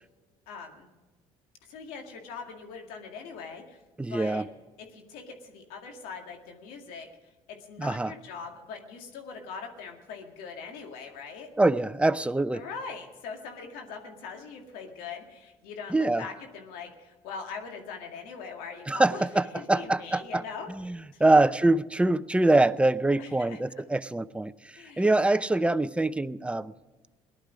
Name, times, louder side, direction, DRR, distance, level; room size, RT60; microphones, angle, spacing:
voice 1, 0.5-0.9 1.7-3.8 4.1-4.4 4.8-7.1 7.5-11.5 12.5-19.2 19.5-20.7 21.1-21.3 23.2-23.6 24.8-25.1, left 5 dB, 80° left, 3 dB, 2.2 m, -41 dB
voice 2, 4.0-4.5 7.8-8.1 11.6-12.6 15.9-16.3 18.9-20.4 20.7-26.7, right 2 dB, 10° right, 14 dB, 0.6 m, -24 dB
18.0 x 11.5 x 5.1 m, 1.2 s
supercardioid pair, 70°, 15 cm